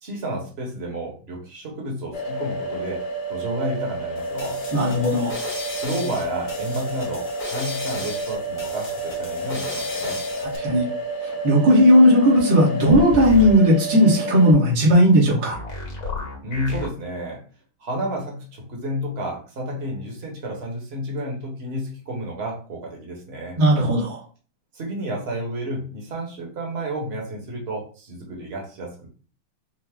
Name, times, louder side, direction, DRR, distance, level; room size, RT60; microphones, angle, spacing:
voice 1, 0.0-3.0 3.3-4.6 5.8-10.2 16.4-17.4 17.8-23.6 24.7-29.1, right 1 dB, 40° right, 0 dB, 1.1 m, -31 dB
sound 1, 2.1-14.5, right 2 dB, 85° left, 1.9 m, -30 dB
sound 2, 4.2-10.6, left 3 dB, 45° left, 0.4 m, -36 dB
voice 2, 4.7-5.4 10.6-10.8 11.4-15.6 23.6-24.2, equal, 80° right, -5 dB, 2.3 m, -16 dB
sound 3, 12.9-13.5 15.5-16.9, left 2 dB, 65° left, 1.8 m, -30 dB
5.5 x 2.1 x 3.5 m, 0.39 s
omnidirectional pair, 2.3 m